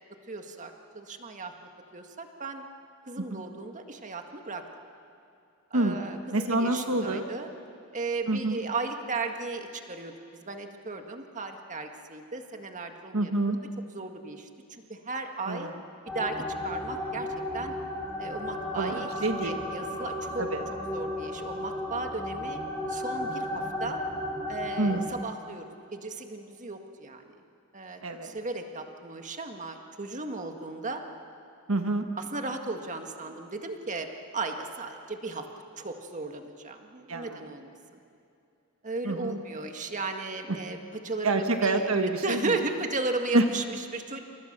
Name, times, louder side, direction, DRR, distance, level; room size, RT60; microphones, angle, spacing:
voice 1, 0.3-1.5 1.9-2.6 3.1-4.6 5.7-7.5 7.9-13.3 13.9-15.7 16.1-17.3 17.5-17.7 18.2-19.1 19.4-20.5 20.9-22.6 22.9-24.0 24.5-25.7 25.9-27.2 27.7-31.0 32.2-34.1 34.3-35.5 35.8-37.7 38.8-40.8 41.0-41.9 42.2-44.2, right 3 dB, 35° right, 5 dB, 1.8 m, -35 dB
voice 2, 6.3-7.2 8.3-8.6 13.1-13.6 15.5-15.7 18.8-19.6 20.4-20.6 24.8-25.1 28.0-28.3 31.7-32.1 37.1-37.4 39.0-39.4 41.2-42.6 43.3-43.4, right 2 dB, 75° right, 6 dB, 1.5 m, -27 dB
sound 1, 16.1-25.0, left 1 dB, 5° left, 7.4 m, -34 dB
29.5 x 27.5 x 6.8 m, 2.7 s
head